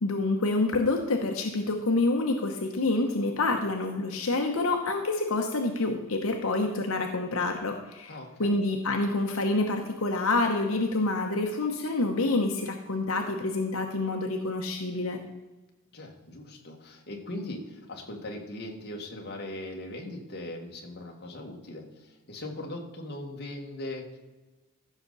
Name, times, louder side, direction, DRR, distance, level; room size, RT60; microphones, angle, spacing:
voice 1, 0.0-8.1 8.4-15.2, left 2 dB, 85° left, 3 dB, 1.0 m, -27 dB
voice 2, 8.1-8.6 15.9-24.2, left 1 dB, 50° left, 1 dB, 1.8 m, -39 dB
15.0 x 6.5 x 4.1 m, 1.1 s
head